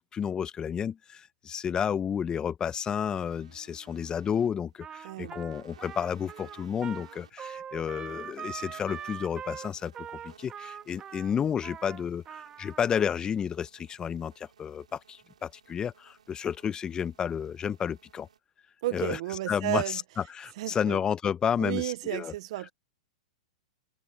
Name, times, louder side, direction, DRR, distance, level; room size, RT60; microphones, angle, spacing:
voice 1, 0.0-18.3 18.9-19.2 19.5-20.0 20.3-22.3, left 8 dB, 20° left, 0.8 m, -31 dB
sound 1, 3.1-18.4, right 8 dB, 85° right, 3.0 m, -59 dB
Trumpet, 4.8-13.1, right 8 dB, 20° right, 1.9 m, -42 dB
voice 2, 5.0-5.4 18.8-20.0 20.6-21.0 21.6-22.7, right 16 dB, 60° right, 0.7 m, -32 dB
hypercardioid pair, 115°, 4 cm